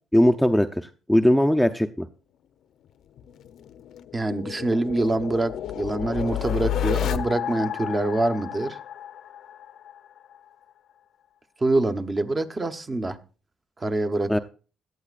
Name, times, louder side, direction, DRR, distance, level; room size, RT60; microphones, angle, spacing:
voice 1, 0.1-2.1 14.3-14.4, equal, ahead, 5 dB, 0.6 m, -20 dB
sound 1, 3.2-10.0, left 10 dB, 75° left, 0.7 m, -31 dB
voice 2, 4.1-8.8 11.6-13.2 13.8-14.4, right 2 dB, 25° right, 8 dB, 1.0 m, -25 dB
17.0 x 11.5 x 2.5 m, 0.36 s
cardioid pair, 90°, 0 cm